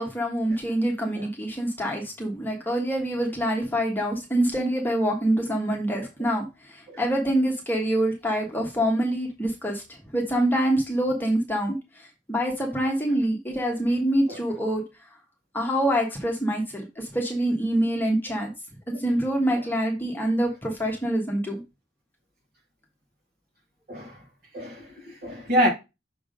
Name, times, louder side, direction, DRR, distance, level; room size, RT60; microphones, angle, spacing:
voice 1, 0.0-9.8 10.1-14.8 15.5-18.5 18.9-21.6, right 1 dB, 10° left, 1.4 m, -25 dB
voice 2, 23.9-24.2 24.5-25.7, equal, 50° right, 2.5 m, -26 dB
6.3 x 3.7 x 5.2 m
head